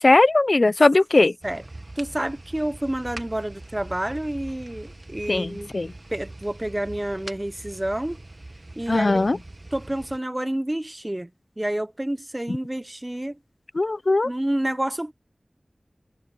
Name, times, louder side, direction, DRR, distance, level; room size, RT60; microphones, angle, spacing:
voice 1, 0.0-1.3 5.3-5.9 8.9-9.4 12.5-12.6 13.7-14.3, left 2 dB, 65° left, 0.6 m, -19 dB
sound 1, 1.4-10.2, right 2 dB, 45° right, 1.3 m, -42 dB
voice 2, 2.0-5.7 6.1-8.2 8.8-9.3 9.7-11.3 11.6-13.4 14.2-15.1, right 1 dB, 25° right, 0.9 m, -29 dB
wide cardioid pair, 45°, 0 cm